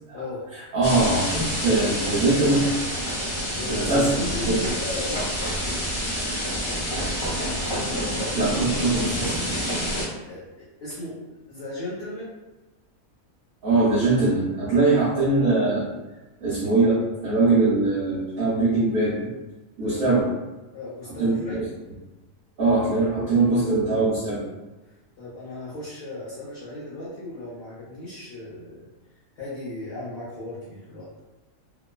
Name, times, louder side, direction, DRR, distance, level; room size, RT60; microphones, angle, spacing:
voice 1, 0.7-2.7 3.7-4.6 8.4-9.4 13.6-15.9 16.4-19.3 19.8-20.3 21.2-21.3 22.6-24.4, right 2 dB, 55° right, -8 dB, 0.8 m, -22 dB
sound 1, 0.8-10.0, equal, 30° left, 0.6 m, -28 dB
voice 2, 3.3-5.9 10.3-11.1 11.5-12.3 19.8-20.2 20.7-21.7 25.2-28.9 29.4-31.1, left 1 dB, 55° left, -9 dB, 0.9 m, -36 dB
2.9 x 2.1 x 2.2 m, 1.1 s
omnidirectional pair, 1.4 m